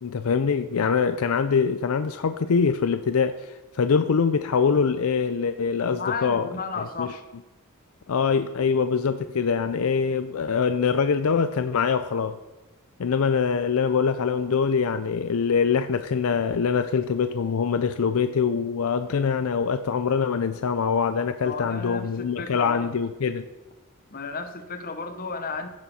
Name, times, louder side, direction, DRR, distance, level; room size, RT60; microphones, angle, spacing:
voice 1, 0.0-6.5 7.0-7.1 8.1-12.4 13.0-23.5, left 6 dB, 70° left, 10 dB, 0.4 m, -24 dB
voice 2, 5.9-7.3 21.4-22.9 24.1-25.7, left 4 dB, 40° left, 7 dB, 1.0 m, -33 dB
16.0 x 7.0 x 4.2 m, 1.0 s
head